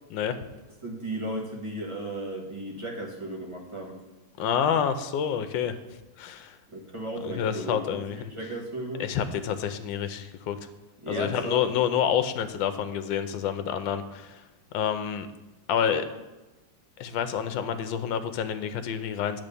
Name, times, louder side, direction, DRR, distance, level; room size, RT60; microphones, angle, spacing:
voice 1, 0.8-4.0 6.7-7.8 8.1-9.1 11.0-11.7, right 1 dB, 20° right, -1 dB, 1.0 m, -35 dB
voice 2, 4.4-5.8 6.2-6.6 7.2-8.3 9.0-10.6 11.1-14.4 14.7-15.3 15.7-16.0 17.0-19.4, left 8 dB, 80° left, 10 dB, 1.4 m, -28 dB
10.5 x 3.5 x 6.8 m, 1.1 s
omnidirectional pair, 2.1 m